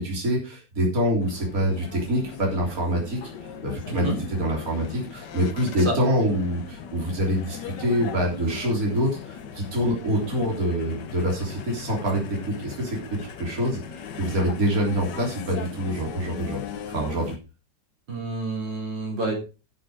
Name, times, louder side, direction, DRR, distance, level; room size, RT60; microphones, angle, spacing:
voice 1, 0.0-16.6 16.9-17.3, equal, 50° right, -2 dB, 3.8 m, -26 dB
sound 1, 1.2-17.4, left 7 dB, 75° left, 1.7 m, -39 dB
voice 2, 3.8-4.2 5.8-6.0 18.1-19.3, right 2 dB, 80° right, 1 dB, 4.4 m, -28 dB
13.0 x 6.7 x 4.8 m, 0.31 s
omnidirectional pair, 1.9 m